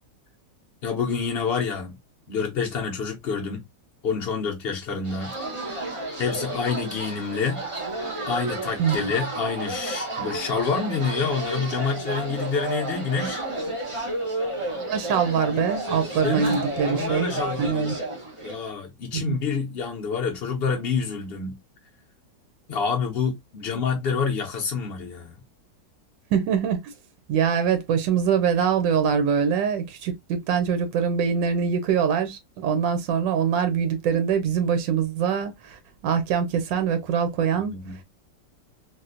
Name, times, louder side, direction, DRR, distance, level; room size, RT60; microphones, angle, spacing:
voice 1, 0.8-2.0 2.3-3.6 4.0-5.6 6.2-7.6 8.3-13.4 16.2-16.6 16.9-18.0 18.4-21.6 22.7-25.4 37.5-38.0, left 5 dB, 80° left, 0.5 m, -28 dB
sound 1, 5.0-18.7, right 2 dB, 40° right, 0.4 m, -31 dB
voice 2, 14.7-17.3 17.6-17.9 19.1-19.4 26.3-26.9 27.3-37.8, right 7 dB, 85° right, 1.3 m, -24 dB
3.5 x 2.4 x 2.4 m
omnidirectional pair, 1.9 m